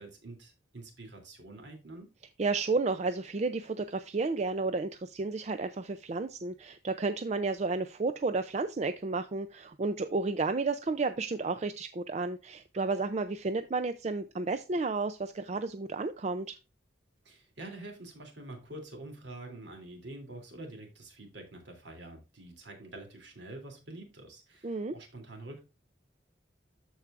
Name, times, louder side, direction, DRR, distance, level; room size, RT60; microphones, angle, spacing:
voice 1, 0.0-2.1 17.2-25.6, right 2 dB, 70° right, 3 dB, 3.0 m, -46 dB
voice 2, 2.4-16.6 24.6-24.9, right 3 dB, 35° right, 9 dB, 0.4 m, -32 dB
13.5 x 4.7 x 2.5 m, 0.29 s
head